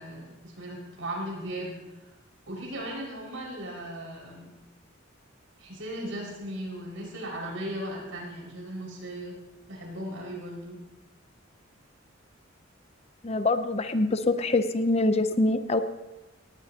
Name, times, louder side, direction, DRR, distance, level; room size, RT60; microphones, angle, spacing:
voice 1, 0.0-2.1 2.5-4.5 5.6-9.4 9.7-10.8, right 1 dB, 80° right, -2 dB, 5.8 m, -37 dB
voice 2, 13.2-15.8, left 2 dB, 30° left, 9 dB, 0.7 m, -24 dB
18.0 x 18.0 x 2.9 m, 1.0 s
head